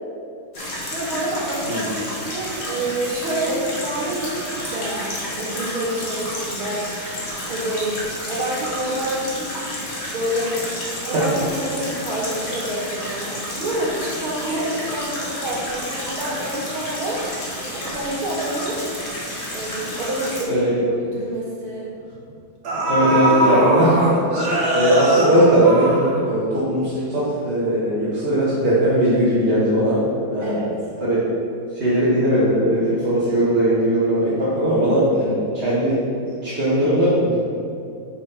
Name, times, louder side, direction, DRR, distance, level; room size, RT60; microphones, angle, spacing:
sound 1, 0.5-20.4, left 1 dB, 35° left, 1.5 m, -31 dB
voice 1, 0.9-7.1 7.4-8.0 8.3-9.6 10.1-10.6 11.1-18.8 19.5-20.5 21.0-21.9 23.0-23.6 30.4-30.7, right 1 dB, 85° right, -6 dB, 3.1 m, -28 dB
sound 2, 20.5-20.6 21.0-21.1 22.2-22.3 22.6-26.6 26.9-27.0, right 1 dB, 55° right, 1.5 m, -22 dB
voice 2, 22.7-24.2 24.7-30.0 30.3-30.5 31.0-31.2 31.7-36.0 36.2-37.4, right 1 dB, 30° right, -11 dB, 1.8 m, -19 dB
6.8 x 5.0 x 5.7 m, 2.5 s
omnidirectional pair, 2.3 m